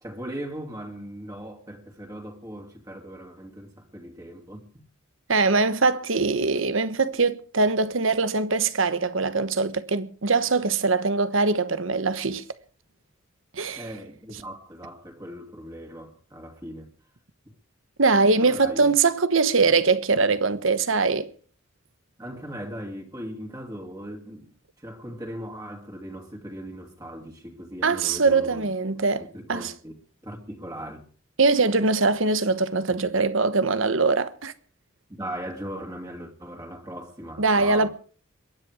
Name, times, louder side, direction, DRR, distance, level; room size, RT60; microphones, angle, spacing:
voice 1, 0.0-4.8 13.8-16.9 18.4-19.0 22.2-24.5 24.8-28.7 29.2-30.0 30.2-31.0 35.1-37.9, equal, 20° right, 2.7 m, -38 dB
voice 2, 5.3-12.4 13.5-13.9 18.0-21.3 27.8-29.7 31.4-34.5 37.4-37.9, right 4 dB, 75° right, 1.2 m, -22 dB
22.5 x 10.0 x 4.9 m
head